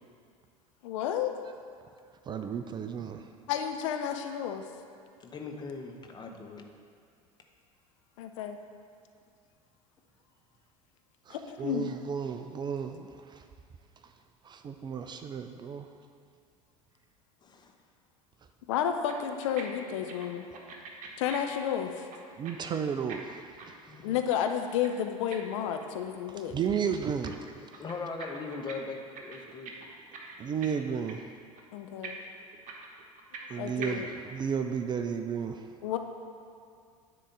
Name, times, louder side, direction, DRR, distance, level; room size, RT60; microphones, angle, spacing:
voice 1, 0.8-1.3 3.5-4.6 8.2-8.6 11.3-11.9 18.7-20.4 21.2-22.1 24.0-26.5 31.7-32.2 33.5-34.1 35.8-36.0, left 9 dB, 55° left, 6 dB, 0.6 m, -31 dB
voice 2, 2.3-3.3 11.3-13.5 14.0-14.1 14.4-15.9 22.4-24.0 26.3-27.5 30.4-31.2 33.5-35.7, right 7 dB, 25° right, 7 dB, 0.4 m, -33 dB
voice 3, 5.2-6.6 17.4-17.7 23.9-24.0 27.8-29.7, left 4 dB, 25° left, 3 dB, 1.0 m, -40 dB
sound 1, 19.1-19.6 19.9-22.5 22.8-26.2 26.4-27.3 27.6-28.7 29.0-30.8 31.1-31.3 31.6-31.7 32.0-33.5 33.8-33.9, right 6 dB, 40° right, 1.2 m, -44 dB
10.0 x 3.8 x 7.4 m, 2.3 s
figure-of-eight pair, 70°, 19 cm